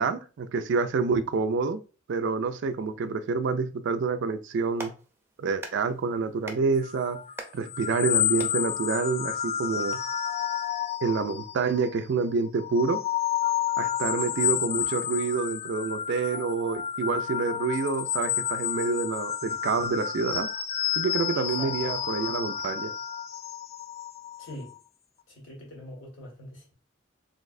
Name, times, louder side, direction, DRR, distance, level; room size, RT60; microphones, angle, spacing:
voice 1, 0.0-1.8 2.1-4.9 5.4-7.2 7.5-10.0 11.0-13.0 13.8-20.5 20.9-22.9, right 4 dB, 65° right, 0.4 m, -28 dB
Clapping, 4.5-10.0, right 2 dB, 10° right, 0.6 m, -46 dB
sound 1, 6.8-12.0 12.5-24.8, left 10 dB, 30° left, 0.3 m, -30 dB
voice 2, 21.3-21.9 24.4-24.7 25.3-26.7, left 1 dB, 75° left, 1.9 m, -42 dB
3.9 x 3.4 x 2.6 m
head